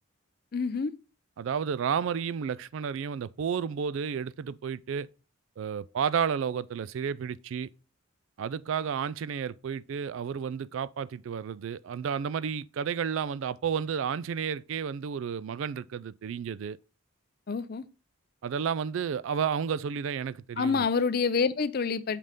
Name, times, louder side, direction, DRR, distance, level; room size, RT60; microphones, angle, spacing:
voice 1, 0.5-0.9 17.5-17.8 20.6-22.2, left 5 dB, 45° left, 0.4 m, -27 dB
voice 2, 1.4-5.1 5.6-7.7 8.4-16.8 18.4-20.8, right 7 dB, 65° right, 0.3 m, -31 dB
6.5 x 5.4 x 3.7 m
head